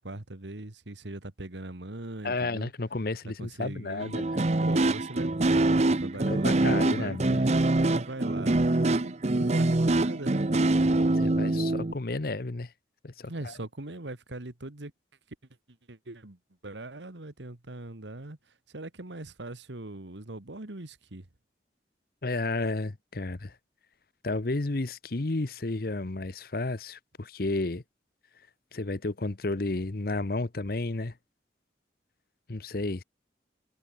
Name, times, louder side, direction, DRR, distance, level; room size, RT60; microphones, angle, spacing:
voice 1, 0.0-2.7 3.4-4.2 4.6-10.4 13.3-14.9 15.9-16.4 16.6-18.4 18.7-21.3, right 2 dB, 90° right, 1.8 m, -40 dB
voice 2, 2.2-4.4 6.1-7.4 11.1-12.7 13.0-13.5 22.2-23.5 24.2-27.8 28.7-31.1 32.5-33.0, left 2 dB, 55° left, 0.9 m, -32 dB
sound 1, 4.0-11.9, right 2 dB, 40° right, 0.7 m, -24 dB
head